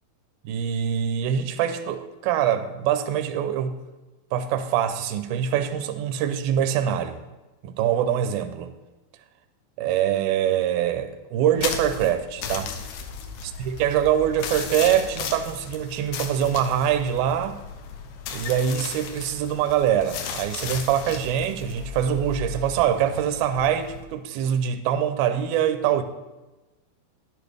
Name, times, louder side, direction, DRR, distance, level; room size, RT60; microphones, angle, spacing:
voice 1, 0.5-3.8 4.3-7.2 7.6-8.7 9.8-12.7 13.6-17.6 18.3-26.0, right 9 dB, 80° right, 9 dB, 2.3 m, -24 dB
sound 1, 11.6-24.0, left 6 dB, 90° left, 2.9 m, -35 dB
11.0 x 10.5 x 3.4 m, 1.1 s
omnidirectional pair, 4.5 m